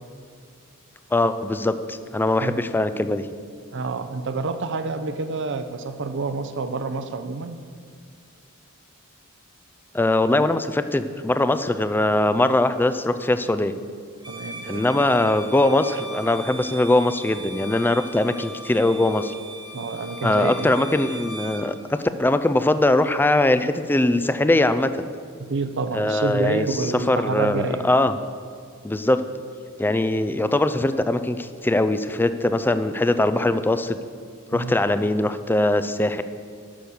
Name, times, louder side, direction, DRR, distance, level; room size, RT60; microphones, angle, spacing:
voice 1, 1.1-3.3 9.9-13.8 14.6-19.3 20.2-24.9 25.9-28.1 28.8-29.2 29.8-34.0 34.5-36.2, left 2 dB, 10° left, 11 dB, 0.4 m, -21 dB
voice 2, 3.7-7.6 14.3-15.1 19.7-20.9 25.4-27.9 34.5-34.7, right 3 dB, 60° right, 10 dB, 0.7 m, -28 dB
Bowed string instrument, 14.2-21.7, right 1 dB, 20° right, 1.1 m, -39 dB
10.0 x 6.5 x 7.0 m, 2.1 s
head